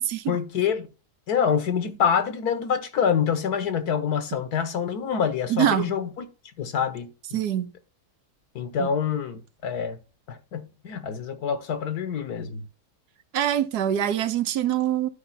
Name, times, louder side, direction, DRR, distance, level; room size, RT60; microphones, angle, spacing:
voice 1, 0.3-0.9 1.3-6.3 6.6-7.4 8.5-10.0 10.3-12.6, left 7 dB, 75° left, 1.5 m, -26 dB
voice 2, 5.5-5.9 7.3-7.7 8.8-8.9 13.3-15.1, right 11 dB, 85° right, 1.3 m, -24 dB
11.5 x 4.9 x 4.1 m
omnidirectional pair, 1.7 m